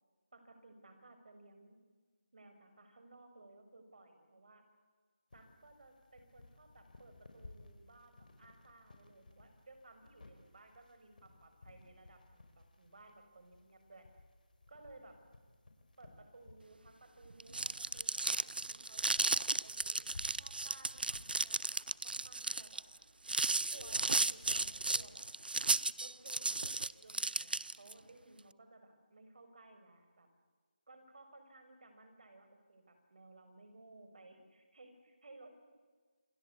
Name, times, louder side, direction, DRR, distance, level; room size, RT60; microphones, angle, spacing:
voice 1, 0.3-1.8 2.3-4.6 5.3-14.1 14.7-15.2 16.0-22.8 23.5-25.3 26.0-30.3 30.9-35.5, right 2 dB, 55° right, 7 dB, 5.8 m, -59 dB
sound 1, 5.3-25.1, left 2 dB, 60° left, 5.7 m, -59 dB
sound 2, 17.3-27.9, right 3 dB, 85° right, 0.8 m, -34 dB
28.0 x 23.5 x 8.4 m, 1.5 s
figure-of-eight pair, 170°, 5 cm